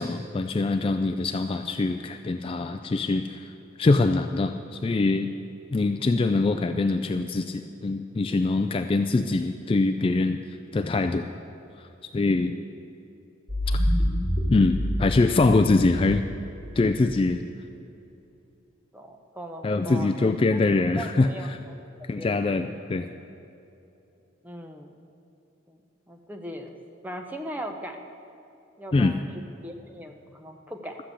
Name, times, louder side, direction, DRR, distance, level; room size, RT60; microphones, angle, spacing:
voice 1, 0.0-3.5 3.8-5.3 5.7-10.4 10.7-11.3 11.8-11.9 12.1-12.6 13.7-13.9 14.5-16.3 16.8-17.4 19.6-21.6 22.1-23.1 28.9-29.2, left 3 dB, 25° left, 8 dB, 0.3 m, -24 dB
sound 1, 13.5-17.0, equal, 30° right, 2.9 m, -27 dB
voice 2, 18.9-20.3 21.0-21.5 22.2-22.3 24.4-24.9 25.7-25.8 26.1-26.8 27.0-28.0 28.8-29.3 29.6-31.0, right 1 dB, 10° right, 3 dB, 0.8 m, -38 dB
13.0 x 7.8 x 8.3 m, 2.8 s
head